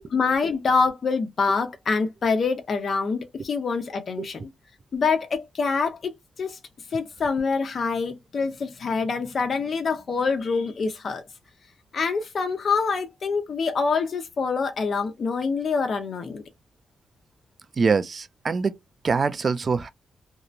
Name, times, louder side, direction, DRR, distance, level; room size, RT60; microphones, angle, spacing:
voice 1, 0.1-4.5 4.9-6.6 6.9-11.2 11.9-16.4, left 4 dB, 50° left, 0.8 m, -25 dB
voice 2, 17.7-18.8 19.0-19.9, right 5 dB, 40° right, 0.3 m, -24 dB
2.8 x 2.1 x 2.4 m
cardioid pair, 120°, 0 cm